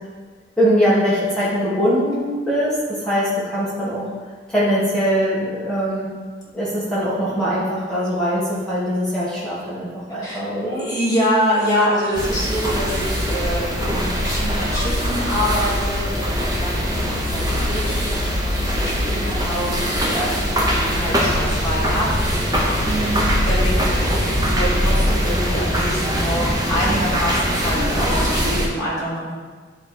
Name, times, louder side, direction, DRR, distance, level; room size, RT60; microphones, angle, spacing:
voice 1, 0.6-4.1 4.5-6.1 6.5-10.9 22.8-23.5, equal, 5° left, -10 dB, 1.7 m, -22 dB
voice 2, 10.2-29.3, equal, 20° left, -8 dB, 2.2 m, -26 dB
sound 1, 12.1-28.7, equal, 20° right, 0.9 m, -22 dB
sound 2, 12.7-24.4, left 4 dB, 70° left, 0.5 m, -31 dB
10.0 x 3.4 x 4.4 m, 1.5 s
head